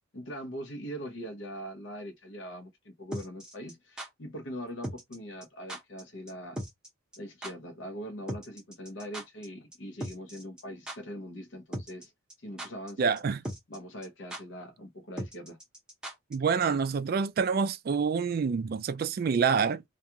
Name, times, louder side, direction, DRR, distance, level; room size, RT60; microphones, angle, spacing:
voice 1, 0.1-6.6 7.2-12.1 12.4-13.1 13.7-15.6, equal, 60° left, 0.8 m, -42 dB
sound 1, 3.1-4.1 4.8-5.2 5.4-5.5 5.7-6.0 6.3-6.4 6.6-6.9 7.1-7.2 7.4-7.5 8.3-9.5 9.7-9.8 10.0-10.6 10.9-11.0 11.7-12.0 12.3-12.9 13.2-13.3 13.4-13.8 14.0-14.1 14.3-14.4 15.2-16.3 16.6-16.7, right 1 dB, 5° right, 0.7 m, -38 dB
voice 2, 13.0-13.4 16.3-19.8, right 5 dB, 45° right, 0.3 m, -27 dB
2.3 x 2.3 x 2.8 m
head